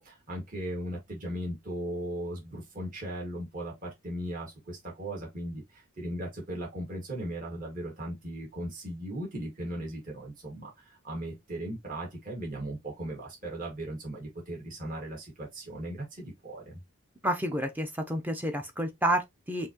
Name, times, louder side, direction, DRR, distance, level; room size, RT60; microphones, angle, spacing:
voice 1, 0.0-16.8, right 1 dB, 40° right, 1.9 m, -37 dB
voice 2, 17.2-19.7, right 1 dB, 10° right, 0.7 m, -30 dB
5.6 x 2.8 x 2.9 m
head